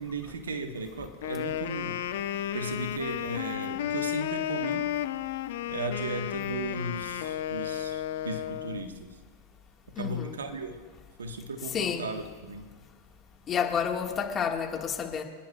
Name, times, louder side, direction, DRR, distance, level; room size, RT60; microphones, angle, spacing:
voice 1, 0.0-2.0 2.2-4.9 5.7-9.2 9.9-10.8 11.2-12.7, right 2 dB, 80° right, 5 dB, 1.3 m, -36 dB
Wind instrument woodwind instrument, 1.1-8.9, left 11 dB, 65° left, 0.7 m, -33 dB
voice 2, 10.0-10.4 11.7-12.1 13.5-15.2, left 7 dB, 30° left, 2 dB, 1.8 m, -30 dB
26.0 x 10.0 x 2.4 m, 1.5 s
hypercardioid pair, 100°, 0 cm